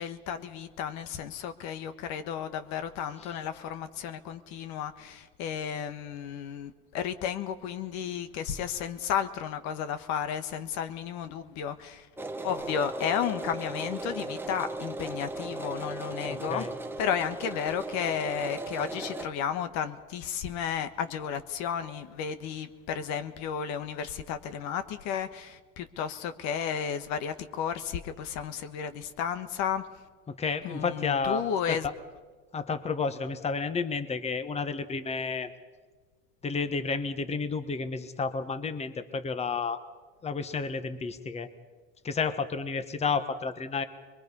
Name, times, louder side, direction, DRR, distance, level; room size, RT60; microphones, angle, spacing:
voice 1, 0.0-12.1 12.4-16.7 17.0-29.9 30.6-31.9, left 8 dB, 65° left, 10 dB, 1.4 m, -33 dB
sound 1, 12.2-19.3, right 2 dB, 5° right, 1.1 m, -37 dB
voice 2, 16.3-16.7 30.3-31.4 31.7-31.9 32.5-35.5 36.4-39.8 40.2-41.5 42.0-43.8, left 5 dB, 20° left, 10 dB, 1.3 m, -31 dB
23.5 x 22.5 x 5.5 m, 1.3 s
supercardioid pair, 120°, 30 cm